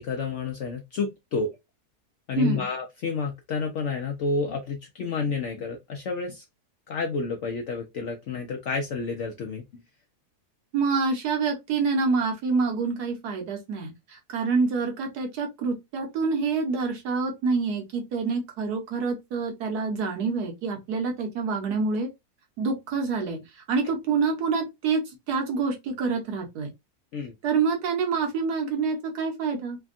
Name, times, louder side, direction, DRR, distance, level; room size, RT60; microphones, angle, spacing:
voice 1, 0.0-1.5 2.3-6.4 6.9-9.6 27.1-27.3, left 4 dB, 70° left, 0.7 m, -30 dB
voice 2, 2.4-2.7 10.7-22.1 22.6-25.0 25.3-26.7 27.4-29.8, right 4 dB, 75° right, 1.4 m, -27 dB
3.3 x 2.2 x 2.4 m
omnidirectional pair, 1.7 m